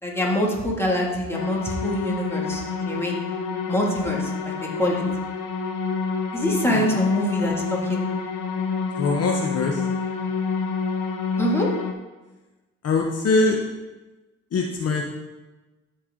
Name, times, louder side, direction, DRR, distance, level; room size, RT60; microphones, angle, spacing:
voice 1, 0.0-3.1 3.7-4.5 4.8-5.0 6.3-8.1 11.4-11.7, equal, 10° left, -3 dB, 2.3 m, -25 dB
sound 1, 1.3-11.9, left 5 dB, 85° left, 0.9 m, -28 dB
voice 2, 9.0-9.8 12.8-13.6 14.5-15.0, left 3 dB, 55° left, 0 dB, 1.1 m, -22 dB
13.5 x 4.6 x 3.8 m, 1.1 s
cardioid pair, 90°, 30 cm